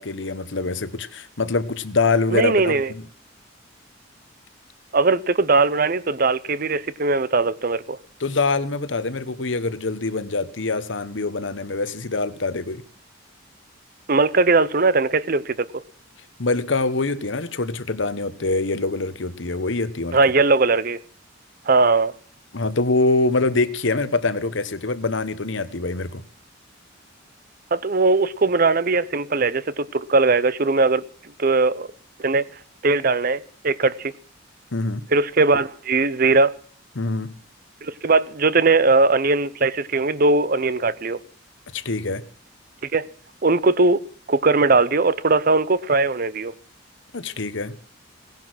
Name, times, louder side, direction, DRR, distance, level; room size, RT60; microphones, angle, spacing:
voice 1, 0.0-3.0 8.2-12.8 16.4-20.2 22.5-26.2 34.7-35.1 36.9-37.4 41.7-42.2 47.1-47.8, left 3 dB, 70° left, 1.1 m, -24 dB
voice 2, 2.3-2.9 4.9-8.0 14.1-15.8 20.1-21.0 21.7-22.1 27.7-31.0 31.4-31.9 32.2-32.5 32.8-34.1 35.1-36.5 37.8-41.2 42.9-43.0 43.4-44.0 44.3-46.5, right 3 dB, 45° right, 0.7 m, -19 dB
17.5 x 10.5 x 6.2 m
head